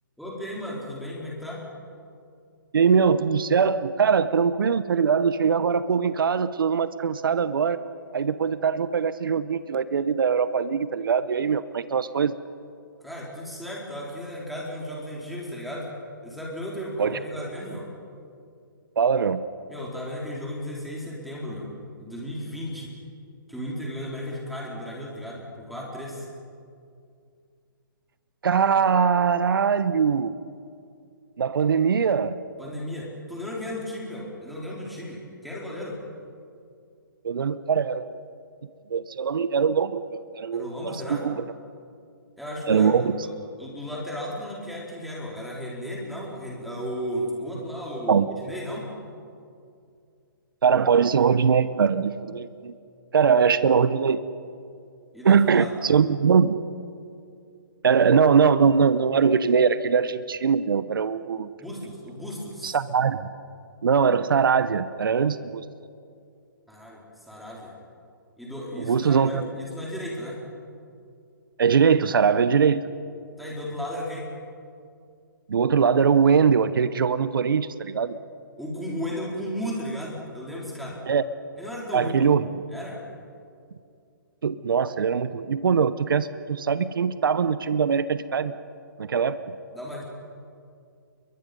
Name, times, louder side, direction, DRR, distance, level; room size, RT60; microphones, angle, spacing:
voice 1, 0.2-1.6 13.0-15.9 16.2-17.9 19.7-21.7 22.0-22.9 23.5-26.3 32.6-36.0 40.5-41.3 42.4-43.3 43.6-48.9 55.1-55.7 61.5-62.8 66.7-67.0 67.3-67.7 68.4-70.4 73.4-74.3 78.6-81.0 81.6-82.3 82.7-83.0 89.7-90.0, equal, ahead, -4 dB, 4.6 m, -34 dB
voice 2, 2.7-7.8 8.1-12.4 17.0-17.2 19.0-19.4 28.4-30.3 31.4-32.4 37.2-38.2 38.9-41.3 42.7-43.0 48.1-48.3 50.6-52.7 53.1-54.2 55.2-56.6 57.8-61.5 62.6-63.3 63.8-65.6 68.8-69.4 71.6-72.8 75.5-78.2 81.1-81.2 81.9-82.5 84.4-88.5 89.0-89.5, right 6 dB, 75° right, 14 dB, 1.0 m, -22 dB
29.5 x 23.0 x 5.4 m, 2.4 s
hypercardioid pair, 150°, 12 cm